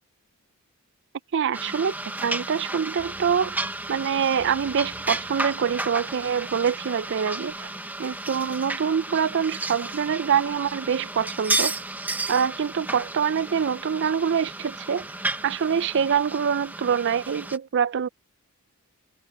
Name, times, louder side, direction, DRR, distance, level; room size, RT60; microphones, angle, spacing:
voice 1, 1.3-1.9 2.2-3.6 3.9-7.7 8.0-11.7 12.3-15.1 15.4-18.1, right 7 dB, 55° right, 0.4 m, -25 dB
sound 1, 1.5-17.6, right 2 dB, 10° right, 1.0 m, -33 dB
sound 2, 3.0-7.7 8.0-8.1, right 1 dB, 30° right, 1.7 m, -54 dB
head